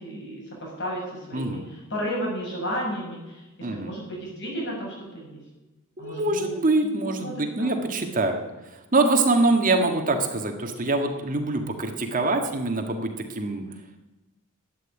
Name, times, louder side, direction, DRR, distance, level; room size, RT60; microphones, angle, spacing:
voice 1, 0.0-5.4 6.0-6.5 7.2-7.7, equal, 55° left, -2 dB, 7.0 m, -33 dB
voice 2, 1.3-1.7 3.6-3.9 6.0-13.6, right 2 dB, 40° right, 4 dB, 1.8 m, -24 dB
12.5 x 9.3 x 9.9 m, 1.0 s
head